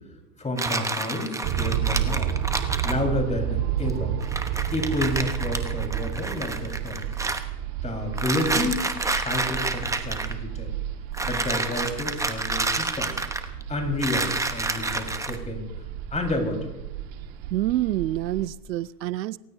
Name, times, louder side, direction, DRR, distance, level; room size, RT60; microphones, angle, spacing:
voice 1, 0.4-2.3 2.8-4.2 4.7-7.1 7.8-10.7 11.2-13.2 13.7-15.7 16.1-16.7, left 2 dB, 15° left, 4.6 m, -30 dB
sound 1, 0.6-3.0 3.9-4.0 4.2-7.4 8.1-10.3 11.1-13.6 14.0-15.4, right 3 dB, 5° right, 1.0 m, -29 dB
sound 2, 1.4-18.5, right 10 dB, 50° right, 1.7 m, -31 dB
voice 2, 17.5-19.4, right 14 dB, 90° right, 0.6 m, -27 dB
27.5 x 15.5 x 2.7 m
hypercardioid pair, 105°, 49 cm